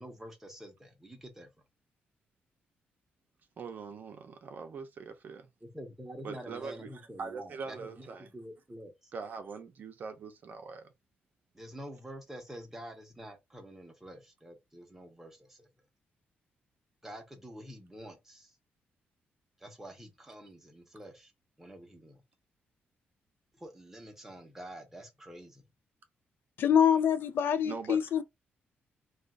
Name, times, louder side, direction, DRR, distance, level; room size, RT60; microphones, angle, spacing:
voice 1, 0.0-1.5 5.6-9.1 11.5-15.7 17.0-18.5 19.6-21.3 21.6-22.2 23.6-25.6, equal, 10° right, 0.8 m, -47 dB
voice 2, 3.6-5.5 6.2-8.3 9.1-10.9 27.6-28.0, right 5 dB, 50° right, 0.6 m, -42 dB
voice 3, 26.6-28.2, left 8 dB, 65° left, 0.3 m, -25 dB
2.5 x 2.3 x 3.7 m
cardioid pair, 145°, 4 cm